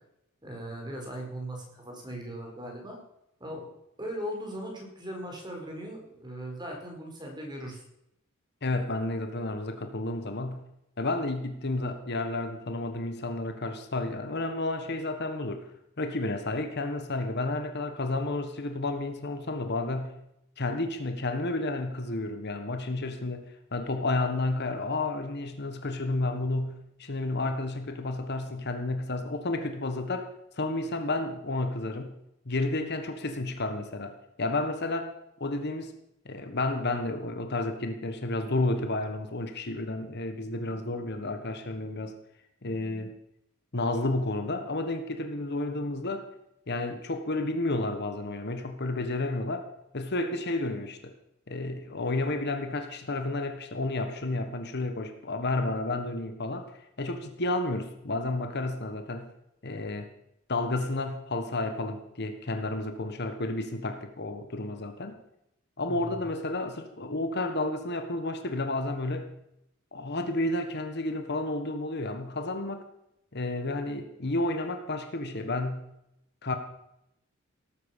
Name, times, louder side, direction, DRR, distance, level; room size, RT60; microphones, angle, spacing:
voice 1, 0.4-3.0 3.4-3.7 4.0-7.8 65.8-66.1, equal, 20° right, 1 dB, 4.6 m, -38 dB
voice 2, 8.6-10.7 11.0-15.7 16.0-20.2 20.6-30.3 30.6-32.2 32.4-35.1 35.4-35.9 36.2-42.2 42.6-43.1 43.7-46.3 46.7-49.7 49.9-51.1 51.5-56.7 57.0-59.3 59.6-60.1 60.5-65.2 65.8-69.3 69.9-72.8 73.3-75.9 76.4-76.5, left 2 dB, 50° left, 8 dB, 1.4 m, -31 dB
18.0 x 9.1 x 7.3 m, 0.81 s
head